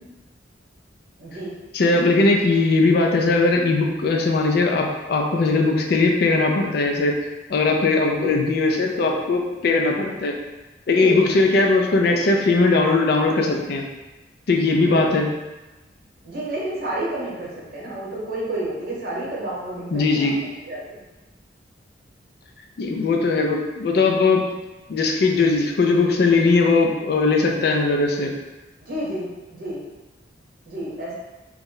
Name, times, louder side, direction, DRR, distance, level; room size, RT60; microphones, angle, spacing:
voice 1, 1.2-1.5 8.2-8.3 10.9-11.4 14.8-15.1 16.2-21.0 28.8-29.8 30.6-31.1, right 1 dB, 50° right, -5 dB, 0.9 m, -30 dB
voice 2, 1.7-7.1 7.5-10.3 10.9-13.8 14.5-15.3 19.9-20.3 22.8-24.5 24.9-28.3, left 3 dB, 55° left, 1 dB, 0.4 m, -19 dB
3.0 x 2.1 x 3.7 m, 1.1 s
head